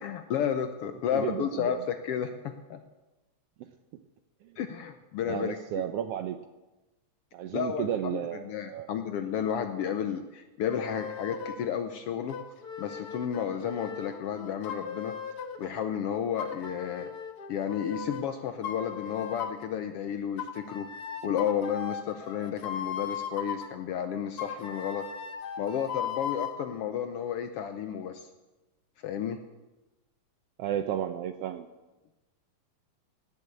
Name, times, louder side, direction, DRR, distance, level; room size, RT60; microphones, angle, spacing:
voice 1, 0.0-2.8 4.6-5.8 7.5-12.4 12.8-15.1 15.6-17.1 17.5-20.9 21.2-25.1 25.6-28.3 29.0-29.4, left 8 dB, 70° left, 7 dB, 1.4 m, -32 dB
voice 2, 1.1-1.8 5.3-6.4 7.3-8.9 30.6-31.7, right 10 dB, 75° right, 8 dB, 1.4 m, -33 dB
sound 1, 10.7-11.7 12.3-15.7 16.4-18.3 18.6-19.7 20.4-23.7 24.4-26.6, left 7 dB, 50° left, 1.2 m, -38 dB
18.0 x 7.3 x 8.3 m, 1.1 s
omnidirectional pair, 3.3 m